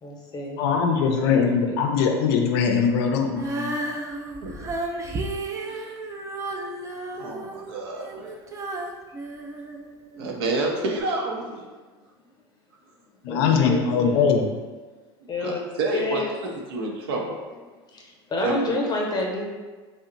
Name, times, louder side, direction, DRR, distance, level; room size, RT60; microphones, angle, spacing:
voice 1, 0.0-0.6 1.0-1.8 7.2-7.3 8.4-8.5 13.3-14.2 15.3-15.7 15.9-16.3 17.9-19.5, left 2 dB, 30° left, -1 dB, 0.8 m, -29 dB
voice 2, 0.6-3.8 13.2-14.4, left 6 dB, 70° left, 3 dB, 0.4 m, -21 dB
Female singing, 3.3-10.4 11.0-11.1, right 2 dB, 25° right, 0.4 m, -33 dB
voice 3, 7.1-8.3 10.2-11.6 15.4-16.2 16.7-17.4 18.4-18.7, right 2 dB, 75° right, 0 dB, 0.6 m, -29 dB
2.8 x 2.1 x 3.7 m, 1.3 s
hypercardioid pair, 95°, 13 cm